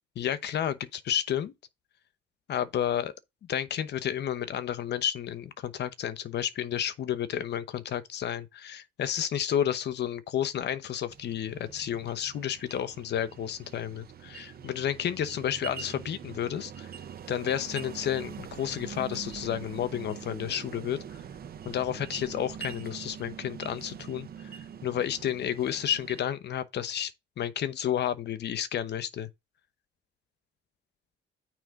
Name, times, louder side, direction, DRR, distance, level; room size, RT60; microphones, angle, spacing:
voice 1, 0.2-1.5 2.5-3.1 3.5-16.9 17.3-21.0 21.6-29.3, left 10 dB, 65° left, 1.0 m, -31 dB
sound 1, 11.1-26.2, right 8 dB, 50° right, 0.9 m, -44 dB
9.1 x 3.3 x 5.2 m
cardioid pair, 90°, 19 cm